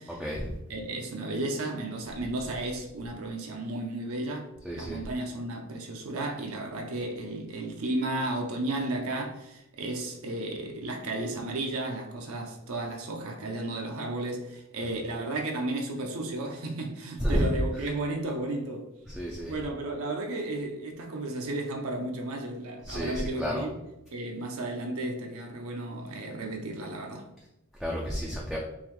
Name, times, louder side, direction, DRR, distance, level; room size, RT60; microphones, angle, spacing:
voice 1, 0.2-0.5 4.6-5.0 17.2-17.6 19.1-19.5 22.8-23.7 27.8-28.6, equal, ahead, 0.3 m, -30 dB
voice 2, 0.7-18.9 19.4-23.8 24.1-27.3, right 2 dB, 65° right, 0.6 m, -33 dB
3.8 x 3.0 x 3.0 m
head